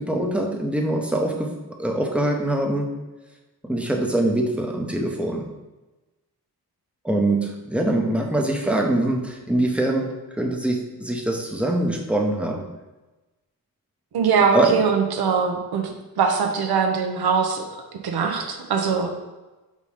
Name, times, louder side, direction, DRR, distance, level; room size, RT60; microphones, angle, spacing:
voice 1, 0.0-1.5 1.8-2.9 3.6-5.5 7.0-12.6 14.5-14.8, right 1 dB, 5° right, 1 dB, 0.8 m, -23 dB
voice 2, 14.1-17.6 18.0-19.1, right 5 dB, 85° right, 3 dB, 1.0 m, -22 dB
5.2 x 4.1 x 4.9 m, 1.1 s
wide cardioid pair, 140°, 37 cm